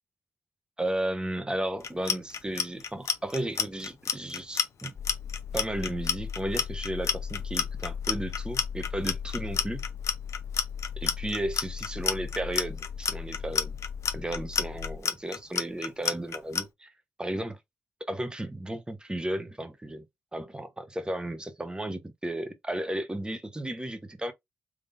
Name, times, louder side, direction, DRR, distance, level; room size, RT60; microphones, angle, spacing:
voice 1, 0.8-4.9 5.5-9.8 11.0-13.8 14.1-16.9 17.2-17.6 18.1-20.0 20.3-24.3, right 1 dB, 15° right, 1.1 m, -34 dB
Clock, 1.8-16.6, left 6 dB, 65° left, 0.9 m, -29 dB
sound 1, 4.9-15.0, left 7 dB, 40° left, 0.4 m, -38 dB
3.7 x 3.2 x 2.6 m
supercardioid pair, 50°, 5 cm